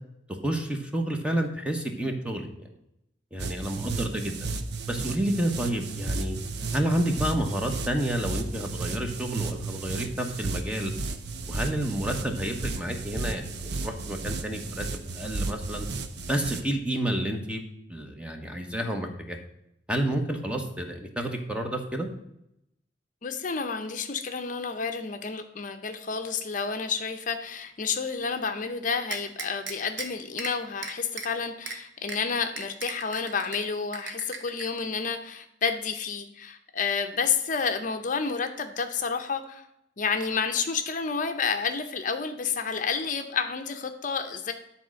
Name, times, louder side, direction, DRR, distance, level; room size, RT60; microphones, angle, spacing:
voice 1, 0.4-2.7 3.3-4.5 4.9-6.4 6.7-10.9 11.5-15.9 16.3-17.6 17.9-19.4 19.9-22.1, right 1 dB, 5° right, 3 dB, 1.0 m, -30 dB
sound 1, 3.4-16.6, right 3 dB, 65° right, 0.7 m, -34 dB
voice 2, 23.2-39.6 40.0-44.5, left 5 dB, 45° left, 7 dB, 0.6 m, -30 dB
sound 2, 29.1-30.1 30.4-30.5 30.8-31.3 31.7-31.8 32.1-32.2 32.6-33.6 33.9-34.6, right 5 dB, 85° right, 1.2 m, -35 dB
10.5 x 4.2 x 6.3 m, 0.80 s
head